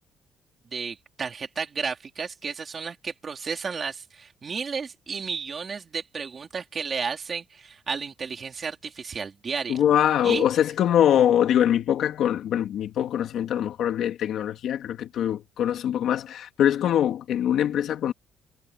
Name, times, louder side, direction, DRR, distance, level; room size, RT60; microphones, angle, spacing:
voice 1, 0.7-9.8 10.2-10.4, right 5 dB, 25° right, 3.6 m, -32 dB
voice 2, 9.7-18.1, left 10 dB, 55° left, 3.2 m, -23 dB
cardioid pair, 175°, 0 cm